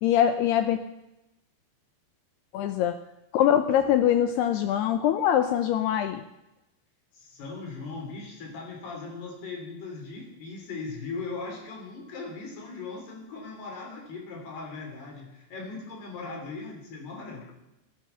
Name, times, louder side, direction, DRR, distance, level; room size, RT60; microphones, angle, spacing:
voice 1, 0.0-0.8 2.5-2.9 3.3-6.2, left 10 dB, 80° left, 9 dB, 2.4 m, -23 dB
voice 2, 7.1-17.5, left 3 dB, 60° left, 1 dB, 5.1 m, -39 dB
20.5 x 11.0 x 5.7 m, 0.93 s
omnidirectional pair, 5.4 m